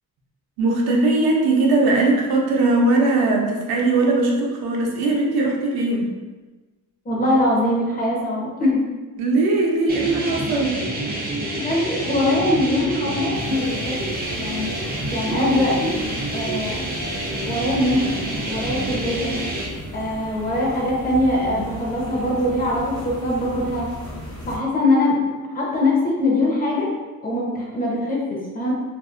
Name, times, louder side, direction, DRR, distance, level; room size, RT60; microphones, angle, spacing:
voice 1, 0.6-6.1 9.2-10.8, right 2 dB, 75° right, -1 dB, 0.6 m, -19 dB
voice 2, 7.1-8.8 11.5-14.0 14.4-14.7 15.1-15.9 16.3-16.8 17.5-18.2 18.5-19.3 19.9-23.9 24.5-25.2 25.5-26.9 27.2-28.7, left 1 dB, 25° left, -4 dB, 0.5 m, -22 dB
sound 1, 9.9-19.7, right 1 dB, 25° right, 0.4 m, -28 dB
sound 2, 13.3-24.6, equal, 50° left, 0.8 m, -36 dB
2.6 x 2.3 x 2.4 m, 1.2 s
cardioid pair, 145°, 37 cm